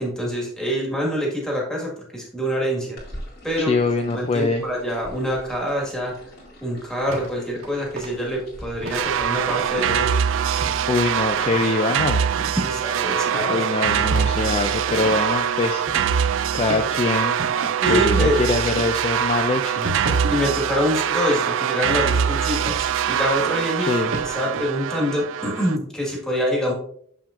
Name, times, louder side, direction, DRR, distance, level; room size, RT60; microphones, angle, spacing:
voice 1, 0.0-3.0 3.4-3.7 4.1-6.1 6.6-10.2 12.5-13.6 17.8-18.4 20.3-24.0 24.2-26.7, equal, 5° left, -2 dB, 1.5 m, -25 dB
sound 1, 3.0-11.5, equal, 50° left, 2.2 m, -43 dB
voice 2, 3.6-4.6 10.9-12.2 13.5-17.4 17.9-19.9 23.9-24.1, left 3 dB, 30° left, 5 dB, 0.3 m, -23 dB
sound 2, 7.1-7.3 7.6-8.1 8.8-9.0 9.5-9.9 10.3-10.9 11.3-12.7 13.0-13.5 13.9-15.2 15.9-16.1 16.7-16.9 17.4-18.1 18.8-18.9 19.3-20.4 22.1-22.9 23.8-23.9 24.1-24.6, right 2 dB, 90° right, 1.5 m, -33 dB
sound 3, 8.9-25.8, right 8 dB, 65° right, 0.3 m, -23 dB
6.8 x 5.8 x 2.5 m, 0.65 s
head